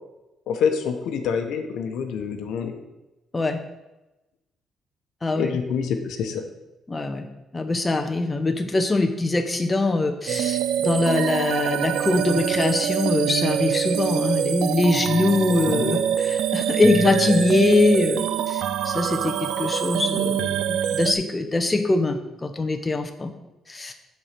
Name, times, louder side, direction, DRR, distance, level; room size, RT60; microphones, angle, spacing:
voice 1, 0.5-2.7 5.3-6.4 15.7-15.9, left 6 dB, 80° left, 5 dB, 0.9 m, -26 dB
voice 2, 6.9-7.3 7.5-23.3 23.7-23.9, left 2 dB, 25° left, 5 dB, 0.9 m, -23 dB
sound 1, 10.3-21.1, right 10 dB, 85° right, 0.4 m, -25 dB
7.2 x 4.6 x 6.6 m, 1.0 s
cardioid pair, 90°, 0 cm